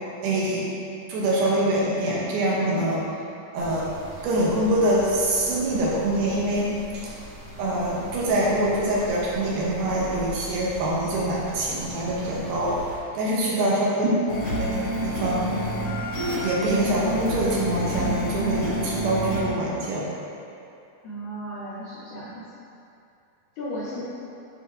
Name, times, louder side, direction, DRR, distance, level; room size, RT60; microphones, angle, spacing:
voice 1, 0.2-0.7 1.1-3.1 3.5-3.9 4.2-7.1 7.6-12.7 13.1-14.1 14.6-15.5 16.4-20.1, right 1 dB, 75° right, -5 dB, 2.5 m, -24 dB
sound 1, 3.6-13.0, right 2 dB, 55° right, 2.1 m, -41 dB
voice 2, 13.3-13.6 21.0-22.4 23.5-24.0, equal, 70° left, -11 dB, 1.8 m, -34 dB
sound 2, 14.3-19.4, equal, 90° left, 1.1 m, -28 dB
8.5 x 4.8 x 2.6 m, 2.7 s
omnidirectional pair, 4.7 m